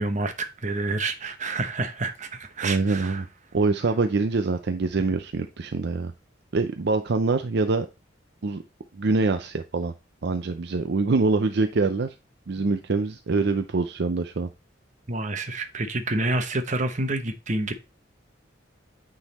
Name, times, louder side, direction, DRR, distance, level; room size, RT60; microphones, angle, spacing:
voice 1, 0.0-3.2 15.1-17.7, right 2 dB, 40° right, 1.0 m, -28 dB
voice 2, 2.6-3.3 3.5-6.1 6.5-7.9 8.4-8.6 8.9-9.9 10.2-12.1 12.5-14.5, right 3 dB, 60° right, 0.5 m, -24 dB
8.9 x 3.9 x 4.1 m
head